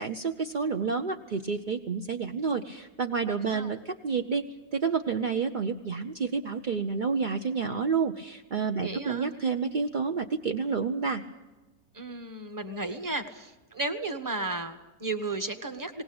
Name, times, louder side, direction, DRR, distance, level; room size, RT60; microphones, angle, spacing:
voice 1, 0.0-4.4 4.7-11.2, right 5 dB, 50° right, 5 dB, 0.6 m, -29 dB
voice 2, 3.3-3.7 8.8-9.3 11.9-16.0, right 3 dB, 15° right, 9 dB, 1.1 m, -34 dB
19.0 x 18.5 x 8.7 m, 1.1 s
omnidirectional pair, 1.8 m